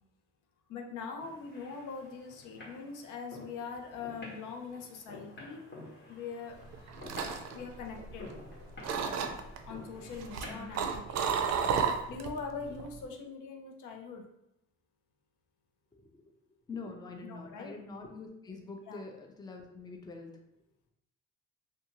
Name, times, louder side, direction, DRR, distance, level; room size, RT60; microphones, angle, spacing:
voice 1, 0.7-5.6 6.1-6.6 7.5-8.4 9.7-14.3 17.3-17.7 18.9-19.0, left 5 dB, 85° left, 2 dB, 0.6 m, -42 dB
sound 1, 1.2-10.7, left 1 dB, 40° left, 0.9 m, -50 dB
sound 2, 6.6-8.5 8.8-9.6 10.1-12.4 12.7-13.0, right 6 dB, 60° right, 0.4 m, -32 dB
voice 2, 16.7-20.3, left 3 dB, 15° left, 2 dB, 0.4 m, -45 dB
2.5 x 2.3 x 2.9 m, 0.84 s
cardioid pair, 90°, 30 cm